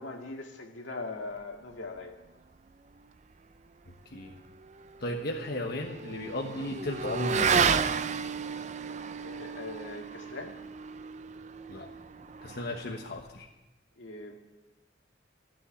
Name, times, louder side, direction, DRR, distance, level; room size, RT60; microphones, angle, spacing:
voice 1, 0.0-2.2 8.6-8.7 9.2-10.6 14.0-14.4, left 3 dB, 85° left, 2 dB, 2.0 m, -41 dB
Motorcycle / Accelerating revving vroom, 4.5-13.3, right 6 dB, 40° right, 0.5 m, -32 dB
voice 2, 5.0-7.7 11.7-11.9 12.4-13.5, left 1 dB, 55° left, 0 dB, 1.2 m, -35 dB
15.0 x 7.7 x 9.7 m, 1.1 s
head